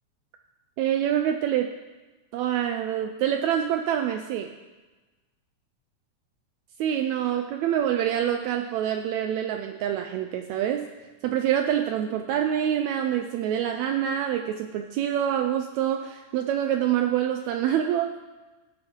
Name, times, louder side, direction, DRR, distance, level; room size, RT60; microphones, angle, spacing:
voice 1, 0.8-1.7 2.3-4.5 6.8-10.8 11.2-18.2, right 10 dB, 85° right, 5 dB, 1.6 m, -26 dB
16.5 x 5.6 x 4.5 m, 1.2 s
omnidirectional pair, 3.7 m